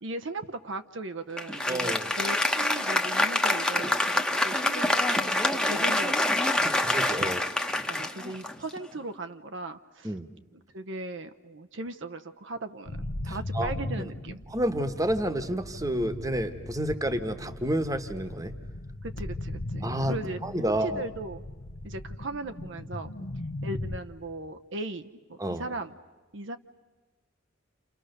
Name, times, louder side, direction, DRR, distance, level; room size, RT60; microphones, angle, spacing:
voice 1, 0.0-6.6 7.2-7.3 7.9-10.1 10.5-13.0 13.2-14.4 19.0-21.4 21.8-23.1 23.6-25.9 26.3-26.6, right 2 dB, 65° right, 8 dB, 0.8 m, -38 dB
Applause, 1.4-9.0, left 1 dB, 5° left, 1.0 m, -26 dB
voice 2, 1.7-2.1 6.6-7.4 10.0-10.3 13.3-13.7 14.5-18.5 19.8-20.1 20.4-21.0 25.4-25.6, right 1 dB, 20° right, 10 dB, 1.2 m, -29 dB
sound 1, 12.9-24.0, left 1 dB, 80° left, 1.0 m, -38 dB
29.0 x 28.5 x 6.7 m, 1.2 s
head